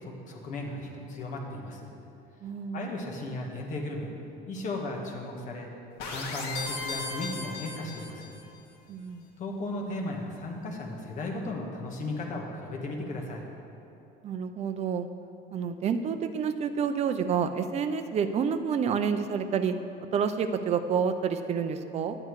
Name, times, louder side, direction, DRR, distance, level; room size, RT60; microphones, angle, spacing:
voice 1, 0.0-1.9 2.7-4.1 4.5-5.7 6.1-6.5 6.8-8.3 9.4-13.4, left 2 dB, 45° left, 0 dB, 1.5 m, -36 dB
voice 2, 2.4-3.0 8.9-9.3 14.2-15.1 15.5-19.7 20.1-22.2, right 6 dB, 35° right, 9 dB, 0.5 m, -29 dB
sound 1, 6.0-8.4, left 3 dB, 80° left, 1.7 m, -36 dB
10.5 x 8.7 x 4.7 m, 2.9 s
cardioid pair, 150°, 19 cm